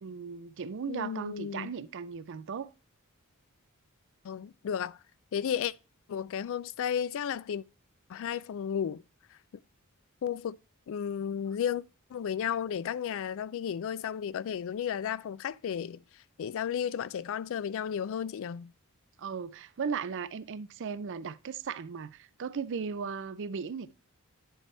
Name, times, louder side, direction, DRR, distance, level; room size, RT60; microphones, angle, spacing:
voice 1, 0.0-2.7 19.2-23.9, right 6 dB, 55° right, 0.4 m, -37 dB
voice 2, 0.9-1.7 4.2-5.0 5.3-5.7 6.1-7.6 8.1-9.0 10.2-10.6 10.9-11.8 12.1-16.0 16.4-18.7, left 8 dB, 60° left, 0.3 m, -33 dB
10.0 x 3.4 x 4.3 m
head